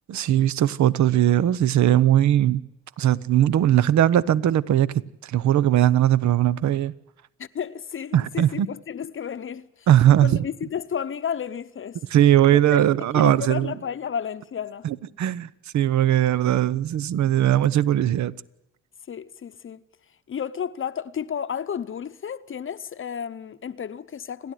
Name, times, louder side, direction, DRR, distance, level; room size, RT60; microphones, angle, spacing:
voice 1, 0.1-2.6 3.0-4.9 5.2-6.9 8.1-8.7 9.9-10.3 12.1-13.7 14.8-18.3, right 11 dB, 70° right, 0.9 m, -19 dB
voice 2, 7.4-9.9 10.2-12.0 12.5-14.9 19.1-19.8 20.3-24.5, left 8 dB, 45° left, 0.8 m, -32 dB
29.0 x 11.5 x 9.2 m
cardioid pair, 90°, 30 cm